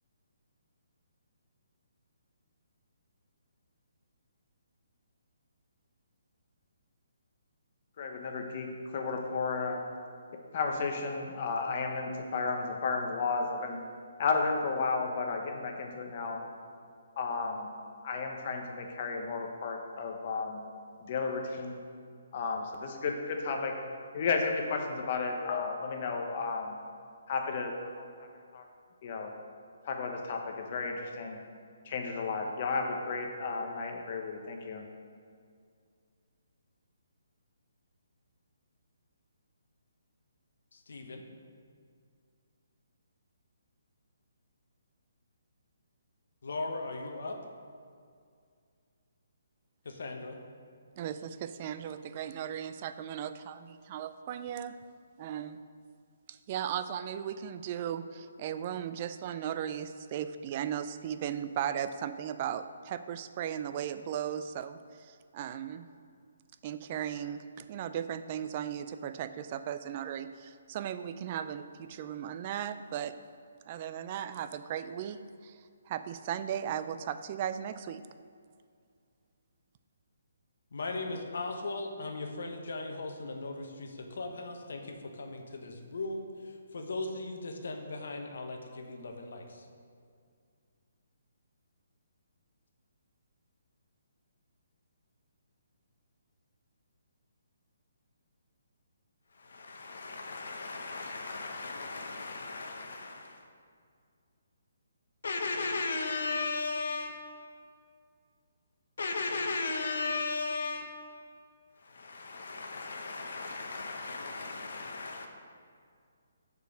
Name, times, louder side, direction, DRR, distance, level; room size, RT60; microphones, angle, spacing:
voice 1, 8.0-9.8 10.5-13.8 14.2-16.4 17.2-17.7 18.0-20.6 21.0-21.8 22.3-23.8 24.1-26.8 27.3-28.1 28.5-28.7 29.0-29.3 29.8-31.4 31.8-34.8, left 4 dB, 45° left, 3 dB, 0.9 m, -33 dB
voice 2, 40.7-41.2 46.4-47.4 49.8-50.4 80.7-86.3 86.7-89.4 99.4-103.4 105.2-107.3 109.0-111.1 111.8-115.3, left 3 dB, 70° left, 4 dB, 1.0 m, -37 dB
voice 3, 51.0-54.8 55.2-55.6 56.3-65.9 66.6-73.1 73.7-75.2 75.4-75.6 75.9-78.0, right 9 dB, 35° right, 11 dB, 0.4 m, -36 dB
6.6 x 5.1 x 6.3 m, 2.2 s
hypercardioid pair, 155°, 0 cm